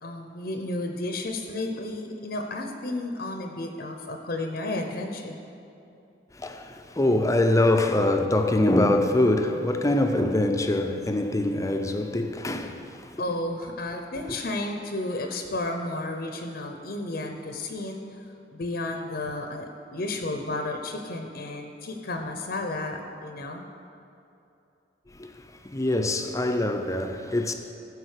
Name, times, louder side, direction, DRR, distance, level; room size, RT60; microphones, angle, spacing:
voice 1, 0.0-5.4 5.9-6.0 13.2-18.2 18.5-23.7, left 2 dB, 60° left, 0.8 m, -32 dB
voice 2, 6.3-13.2 14.3-14.4 25.1-27.5, left 1 dB, 20° left, 0.6 m, -24 dB
14.5 x 5.0 x 6.6 m
head